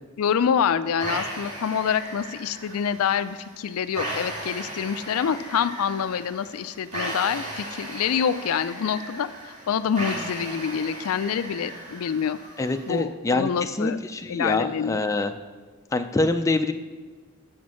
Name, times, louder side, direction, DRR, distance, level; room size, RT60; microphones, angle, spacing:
voice 1, 0.2-12.4 12.9-14.0 14.3-15.0, left 7 dB, 85° left, 14 dB, 0.4 m, -26 dB
sound 1, 1.0-13.0, right 1 dB, 35° right, 2.4 m, -36 dB
voice 2, 12.6-15.3 15.9-16.7, left 2 dB, 15° left, 7 dB, 0.3 m, -25 dB
6.5 x 6.2 x 6.1 m, 1.4 s
head